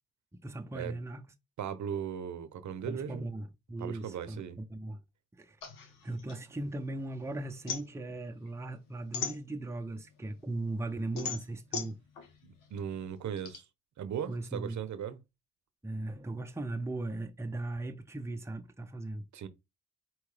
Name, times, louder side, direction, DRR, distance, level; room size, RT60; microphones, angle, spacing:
voice 1, 0.4-1.2 2.9-5.0 5.3-5.6 6.0-12.0 14.3-14.8 15.8-19.2, right 2 dB, 10° right, 0.7 m, -38 dB
voice 2, 1.6-3.3 3.8-4.6 12.4-13.6 14.0-15.2 19.3-19.5, right 8 dB, 60° right, 0.8 m, -38 dB
sound 1, 5.6-7.1 7.4-10.0 10.4-13.6, left 6 dB, 80° left, 1.1 m, -40 dB
4.6 x 3.0 x 3.3 m
supercardioid pair, 55°, 33 cm